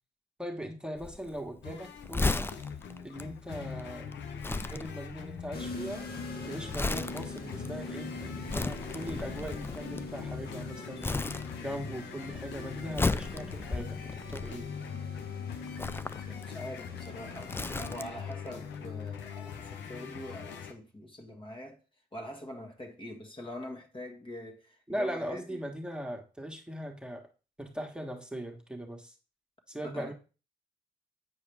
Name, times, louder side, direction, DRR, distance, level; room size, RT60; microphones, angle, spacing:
voice 1, 0.4-2.5 3.0-4.1 4.6-6.1 6.5-11.2 11.6-14.7 20.0-20.1 24.9-27.3 27.6-29.1 29.7-30.1, equal, 5° right, 1.5 m, -39 dB
Crumpling crinkling, 1.0-10.6 11.0-12.0 12.2-15.0 15.7-18.3 18.6-18.7, left 3 dB, 10° left, 0.4 m, -35 dB
sound 1, 1.6-20.7, left 7 dB, 85° left, 0.9 m, -42 dB
sound 2, 5.5-18.1, left 3 dB, 60° left, 2.0 m, -44 dB
voice 2, 16.3-21.8 22.1-25.7 29.8-30.1, left 1 dB, 30° left, 1.5 m, -44 dB
8.2 x 4.9 x 3.4 m
supercardioid pair, 50°, 18 cm